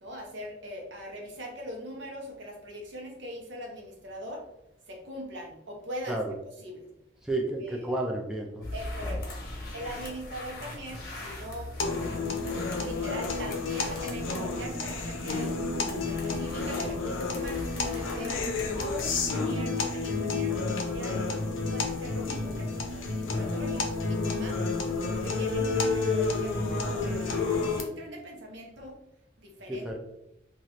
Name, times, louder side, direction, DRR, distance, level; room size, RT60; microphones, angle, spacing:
voice 1, 0.0-4.5 4.9-6.2 6.6-6.9 7.6-7.9 8.7-9.2 9.7-15.5 16.1-18.4 18.8-21.2 21.7-24.6 25.1-29.0 29.4-29.9, equal, 65° right, 0 dB, 0.8 m, -41 dB
voice 2, 7.2-8.7 9.0-9.2 29.8-30.0, right 2 dB, 5° right, -1 dB, 0.3 m, -31 dB
sound 1, 8.6-19.3, left 1 dB, 50° left, 0.7 m, -40 dB
sound 2, 11.8-27.8, left 3 dB, 90° left, 0.5 m, -30 dB
3.0 x 2.4 x 2.8 m, 0.82 s
head